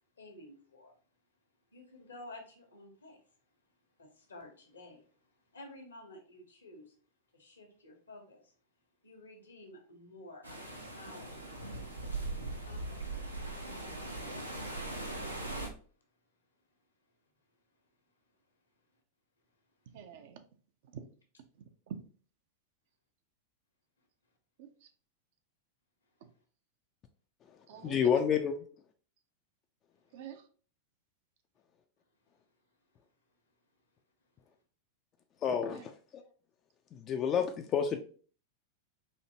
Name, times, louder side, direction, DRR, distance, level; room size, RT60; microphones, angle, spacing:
voice 1, 0.2-0.9 1.7-3.2 4.0-6.9 7.3-8.5 9.0-11.3 12.5-13.3 13.8-15.1, left 2 dB, 75° left, 3 dB, 1.0 m, -53 dB
sound 1, 10.4-15.7, right 2 dB, 85° right, 0.7 m, -40 dB
voice 2, 19.9-20.5 20.8-21.2 21.5-22.0 24.6-24.9 26.2-26.3 27.7-28.3 30.1-30.5 35.6-35.8, right 8 dB, 55° right, 8 dB, 0.5 m, -47 dB
voice 3, 27.4-28.5 35.4-36.2 36.9-38.0, left 7 dB, 30° left, 5 dB, 0.3 m, -30 dB
4.3 x 2.7 x 2.8 m, 0.42 s
figure-of-eight pair, 90°, 0 cm